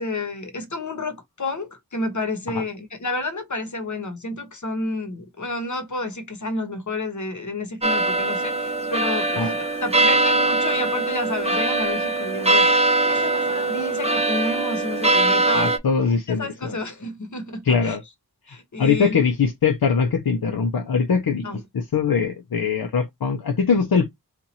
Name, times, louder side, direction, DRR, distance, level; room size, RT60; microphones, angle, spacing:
voice 1, 0.0-15.8 16.3-18.0 18.5-19.2 21.4-21.6, left 2 dB, 50° left, 1.0 m, -30 dB
sound 1, 7.8-15.8, right 2 dB, 15° right, 0.6 m, -21 dB
voice 2, 15.5-16.8 17.7-18.0 18.8-21.4 21.7-24.1, left 5 dB, 65° left, 0.7 m, -21 dB
2.9 x 2.5 x 4.0 m
wide cardioid pair, 70°, 39 cm